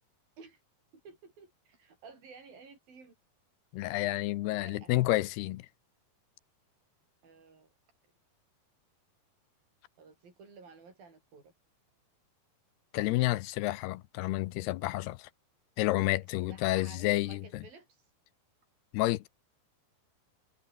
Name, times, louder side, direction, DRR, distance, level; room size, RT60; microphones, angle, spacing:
voice 1, 1.0-3.2 4.6-4.9 7.2-7.7 10.0-11.5 16.5-18.0, right 4 dB, 60° right, 9.2 m, -53 dB
voice 2, 3.7-5.7 12.9-15.3 15.8-17.7 18.9-19.3, left 17 dB, 85° left, 3.0 m, -30 dB
omnidirectional pair, 4.6 m